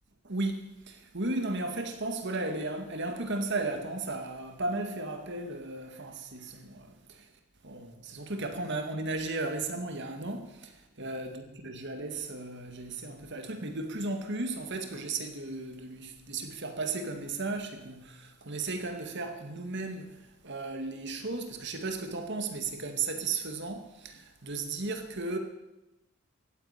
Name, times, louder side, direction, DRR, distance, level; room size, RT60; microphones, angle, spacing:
voice 1, 0.2-7.3 7.6-25.4, right 3 dB, 55° right, 2.1 m, -35 dB
15.5 x 9.7 x 9.0 m
head